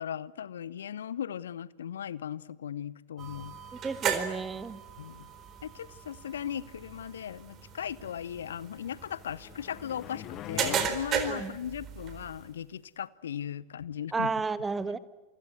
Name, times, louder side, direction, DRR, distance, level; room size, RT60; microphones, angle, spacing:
voice 1, 0.0-3.6 5.0-5.3 5.6-14.3, left 9 dB, 65° left, 0.9 m, -38 dB
sound 1, 3.2-12.5, right 8 dB, 30° right, 4.2 m, -36 dB
voice 2, 3.8-4.8 11.2-11.5 14.1-15.0, right 4 dB, 15° right, 1.5 m, -32 dB
sound 2, 8.9-10.9, left 14 dB, 35° left, 0.9 m, -41 dB
29.0 x 25.0 x 7.8 m
figure-of-eight pair, 90°, 0 cm